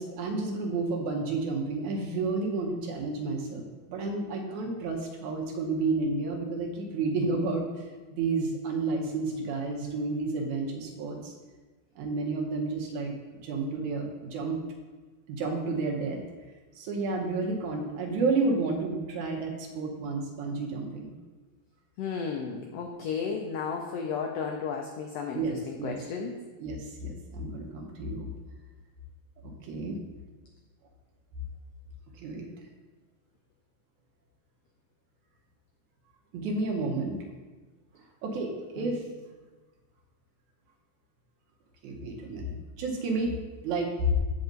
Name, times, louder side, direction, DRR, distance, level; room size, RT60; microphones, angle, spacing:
voice 1, 0.0-7.7 8.1-11.3 12.0-14.6 15.3-16.2 16.8-21.1 25.3-26.0 26.6-28.3 29.4-30.0 32.2-32.5 36.3-37.2 38.2-39.0 41.8-43.4 43.6-44.2, right 3 dB, 75° right, 1 dB, 2.2 m, -31 dB
voice 2, 22.0-26.3 38.8-39.0, left 5 dB, 85° left, 2 dB, 1.4 m, -34 dB
8.6 x 5.3 x 3.9 m, 1.3 s
omnidirectional pair, 3.5 m